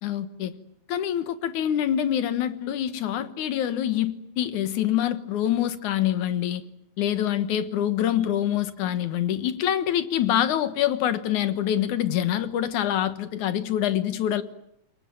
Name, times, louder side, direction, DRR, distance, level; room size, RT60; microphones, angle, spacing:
voice 1, 0.0-0.5 0.9-6.6 7.0-14.4, left 11 dB, 90° left, 2.8 m, -25 dB
28.0 x 22.5 x 8.9 m
omnidirectional pair, 3.4 m